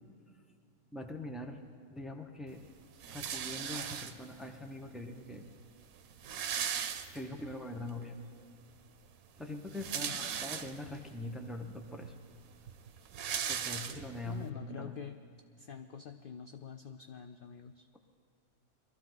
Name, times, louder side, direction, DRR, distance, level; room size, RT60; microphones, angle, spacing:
voice 1, 0.9-1.6 1.9-2.6 3.1-5.4 7.1-8.2 9.4-12.1 13.5-15.0, left 1 dB, ahead, 4 dB, 0.7 m, -43 dB
sound 1, 3.0-4.5 5.3-5.4 5.6-5.7 6.0-7.6 8.0-8.1 9.5-11.0 11.6-11.7 12.0-14.4, right 8 dB, 90° right, 1.2 m, -38 dB
voice 2, 10.0-10.5 14.2-15.2 15.6-17.9, left 7 dB, 60° left, 8 dB, 0.5 m, -46 dB
22.5 x 13.5 x 4.0 m, 2.4 s
omnidirectional pair, 1.4 m